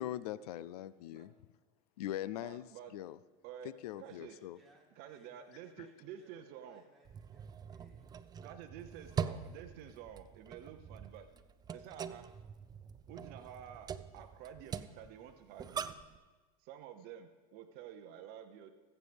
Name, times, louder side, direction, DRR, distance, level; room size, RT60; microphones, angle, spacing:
voice 1, 0.0-1.3 2.0-2.7 2.9-3.2 3.8-4.6, left 13 dB, 85° left, 17 dB, 0.4 m, -41 dB
voice 2, 2.4-2.9 3.4-3.7 4.0-4.3 5.0-6.8 8.4-11.3 11.7-12.3 13.1-16.0 16.6-18.7, right 9 dB, 55° right, 8 dB, 0.8 m, -50 dB
voice 3, 4.0-8.4, right 1 dB, ahead, -4 dB, 3.6 m, -67 dB
sound 1, 7.0-16.2, right 7 dB, 20° right, 0.4 m, -44 dB
19.5 x 8.2 x 3.5 m, 1.3 s
supercardioid pair, 115°, 19 cm